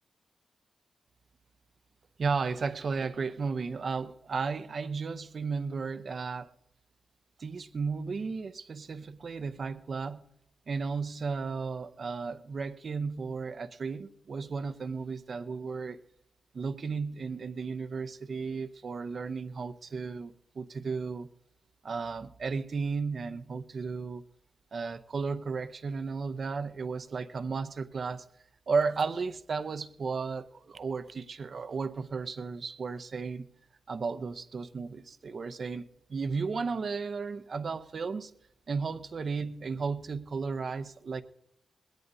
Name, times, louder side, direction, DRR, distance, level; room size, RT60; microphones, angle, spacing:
voice 1, 2.2-6.5 7.4-10.3 10.7-16.0 16.5-21.3 21.8-24.2 24.7-28.3 28.7-33.5 33.9-38.3 38.7-41.2, right 4 dB, 55° right, 0.7 m, -34 dB
20.5 x 17.0 x 2.7 m
cardioid pair, 70°, 0 cm